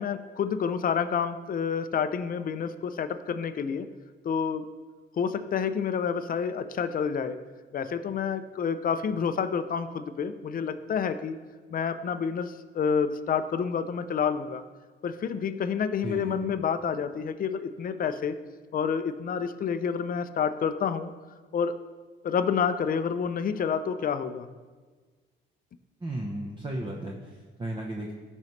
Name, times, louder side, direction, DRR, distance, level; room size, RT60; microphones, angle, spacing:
voice 1, 0.0-3.9 4.2-4.6 5.2-7.4 7.7-11.4 11.7-14.6 15.0-18.4 18.7-21.1 21.5-21.7 22.2-24.5, left 6 dB, 45° left, 10 dB, 0.6 m, -29 dB
voice 2, 16.0-16.5 26.0-28.1, right 1 dB, 25° right, -1 dB, 1.0 m, -34 dB
14.5 x 5.4 x 3.2 m, 1.4 s
cardioid pair, 90°, 20 cm